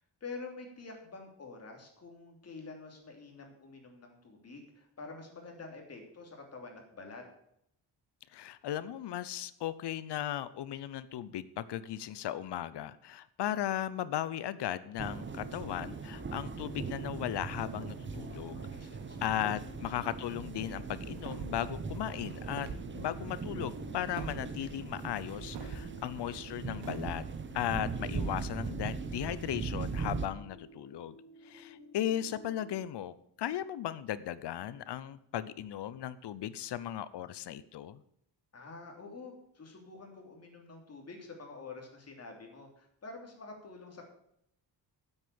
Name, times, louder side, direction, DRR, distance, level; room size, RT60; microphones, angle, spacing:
voice 1, 0.0-7.2 18.5-19.5 38.5-44.0, left 3 dB, 35° left, 2 dB, 3.0 m, -48 dB
voice 2, 8.3-18.6 19.2-22.7 22.9-27.2 27.5-31.2 31.4-38.0, left 11 dB, 75° left, 16 dB, 0.8 m, -36 dB
sound 1, 15.0-30.3, right 5 dB, 30° right, 0.9 m, -40 dB
sound 2, 15.4-32.8, left 1 dB, 20° left, 3.6 m, -53 dB
sound 3, 21.1-21.7 22.4-22.9 24.2-24.4 25.5-25.9 26.8-27.2, right 6 dB, 80° right, 1.8 m, -41 dB
9.4 x 8.2 x 6.9 m, 0.72 s
wide cardioid pair, 145°, 41 cm